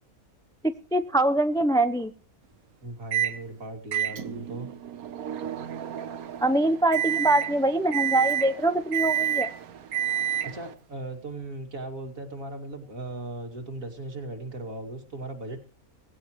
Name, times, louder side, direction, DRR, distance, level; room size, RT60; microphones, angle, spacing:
voice 1, 0.6-2.1 6.4-9.5, right 1 dB, 5° left, 10 dB, 0.3 m, -24 dB
voice 2, 2.8-4.7 10.4-15.6, right 2 dB, 65° right, 4 dB, 2.8 m, -37 dB
Microwave oven, 3.1-3.4 3.9-10.7, right 10 dB, 90° right, 1.4 m, -29 dB
18.5 x 16.0 x 3.1 m, 0.40 s
omnidirectional pair, 1.5 m